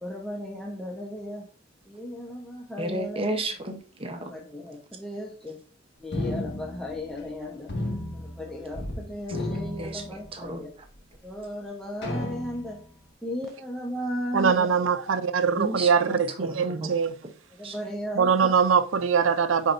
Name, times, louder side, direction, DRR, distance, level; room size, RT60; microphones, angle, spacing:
voice 1, 0.0-1.5 1.9-3.2 4.3-5.6 6.0-7.7 8.1-10.7 11.2-12.8 13.2-14.7 17.6-18.5, equal, 5° left, 1.0 m, -35 dB
voice 2, 2.8-4.4 9.8-10.6 15.6-16.9 17.6-17.8, right 2 dB, 30° right, 0.9 m, -33 dB
sound 1, 6.1-7.4 7.7-9.0 9.2-10.6 11.1-11.2 12.0-12.9, left 1 dB, 60° left, 1.8 m, -33 dB
voice 3, 14.3-17.2 18.1-19.7, right 6 dB, 90° right, 0.6 m, -22 dB
9.8 x 4.4 x 2.6 m
head